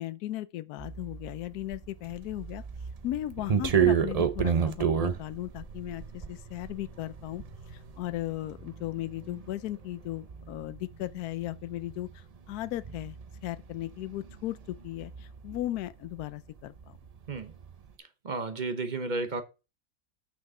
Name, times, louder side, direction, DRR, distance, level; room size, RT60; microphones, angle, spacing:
voice 1, 0.0-2.6 3.0-13.2 13.4-17.0, left 14 dB, 75° left, 1.1 m, -36 dB
sound 1, 0.8-16.3 16.6-17.9, right 7 dB, 65° right, 0.3 m, -32 dB
voice 2, 18.2-19.4, right 3 dB, 35° right, 0.8 m, -32 dB
6.3 x 5.9 x 5.4 m
omnidirectional pair, 1.7 m